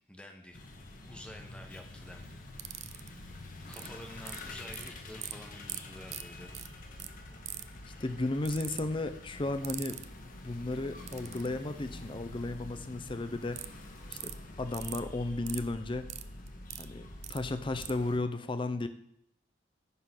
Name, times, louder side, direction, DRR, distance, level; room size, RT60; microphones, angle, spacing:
voice 1, 0.1-0.6 1.1-2.4 3.7-6.5, left 1 dB, 5° left, 3 dB, 1.0 m, -49 dB
sound 1, 0.5-18.2, left 1 dB, 45° left, 1.1 m, -47 dB
sound 2, 2.6-3.1 3.7-3.9 4.3-4.9 5.2-5.3 5.7-5.8 6.1-6.2 6.5-6.7 7.0-7.1 7.5-7.8 8.5-8.8 9.6-10.0 11.1-11.5 13.6-13.7 14.1-14.3 14.7-15.0 15.5-15.6 16.1-16.9 17.2-17.4 17.8-17.9, right 12 dB, 35° right, 0.4 m, -40 dB
voice 2, 7.9-10.0 10.4-13.7 14.1-14.3 14.6-16.1 16.8-18.9, left 2 dB, 25° left, 9 dB, 0.5 m, -34 dB
9.6 x 3.8 x 5.9 m, 0.71 s
head